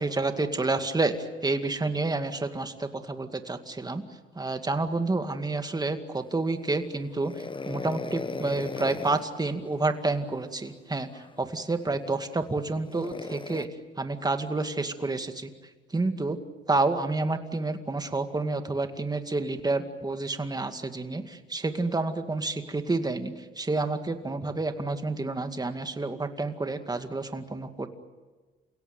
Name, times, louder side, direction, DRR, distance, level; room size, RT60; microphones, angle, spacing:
voice 1, 0.0-4.0 4.4-13.7 14.0-15.5 15.9-16.4 16.7-27.9, right 3 dB, 20° right, 7 dB, 2.2 m, -29 dB
sound 1, 7.2-9.3 11.1-11.3 12.9-13.7, left 4 dB, 25° left, 1.1 m, -36 dB
29.5 x 17.0 x 9.4 m, 1.3 s
cardioid pair, 90°, 20 cm